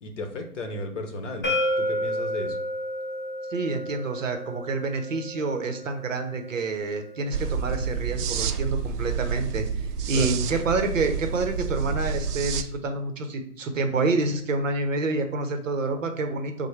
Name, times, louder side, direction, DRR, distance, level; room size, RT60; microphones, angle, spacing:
voice 1, 0.0-2.6 10.1-10.3, left 2 dB, 50° left, 5 dB, 0.9 m, -34 dB
sound 1, 1.4-7.2, equal, 15° left, 0.5 m, -31 dB
voice 2, 3.5-16.7, right 3 dB, 55° right, 6 dB, 0.8 m, -28 dB
sound 2, 7.3-12.6, right 6 dB, 85° right, 0.6 m, -29 dB
6.1 x 2.2 x 3.2 m, 0.69 s
hypercardioid pair, 150°, 45 cm